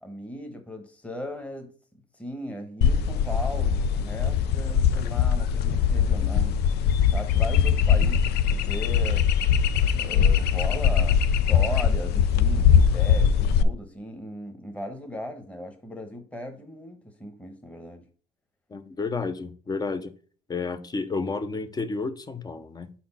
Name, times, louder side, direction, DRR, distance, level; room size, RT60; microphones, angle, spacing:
voice 1, 0.0-1.7 2.1-6.6 7.1-9.2 9.9-18.0, left 1 dB, 5° left, 1.1 m, -37 dB
sound 1, 2.8-13.6, left 7 dB, 75° left, 0.4 m, -21 dB
voice 2, 18.7-20.1 20.5-22.9, left 4 dB, 25° left, 0.6 m, -31 dB
4.7 x 4.2 x 5.5 m
cardioid pair, 110°, 17 cm